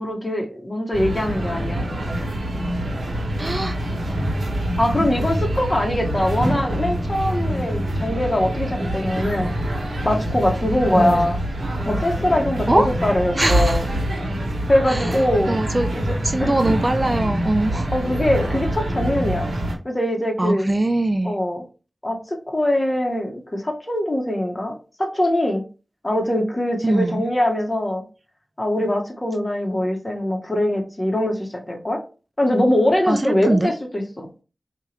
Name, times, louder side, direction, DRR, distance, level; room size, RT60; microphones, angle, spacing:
voice 1, 0.0-1.8 4.8-9.5 10.0-11.4 11.8-13.8 14.7-15.6 15.9-16.0 16.4-16.5 17.9-19.5 19.8-20.7 21.2-21.6 22.0-25.6 26.0-28.0 28.6-32.0 32.4-34.3, left 1 dB, 25° left, 2 dB, 1.3 m, -22 dB
sound 1, 0.9-19.7, right 1 dB, 85° right, 1.3 m, -25 dB
voice 2, 3.4-3.8 11.0-11.3 12.7-12.9 13.4-13.8 14.9-15.1 15.5-15.9 16.2-17.9 20.4-21.4 26.8-27.2 33.1-33.7, right 2 dB, 30° right, 9 dB, 0.4 m, -21 dB
4.6 x 2.9 x 3.3 m, 0.34 s
wide cardioid pair, 60°, 0 cm